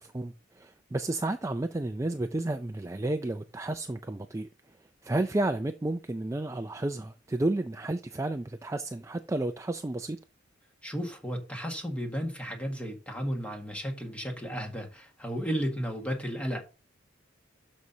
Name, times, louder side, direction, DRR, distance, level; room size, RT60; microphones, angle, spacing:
voice 1, 0.0-4.5 5.0-10.2, right 2 dB, 15° right, 0.4 m, -31 dB
voice 2, 10.8-16.6, equal, 5° left, 1.7 m, -33 dB
12.5 x 5.4 x 2.8 m
head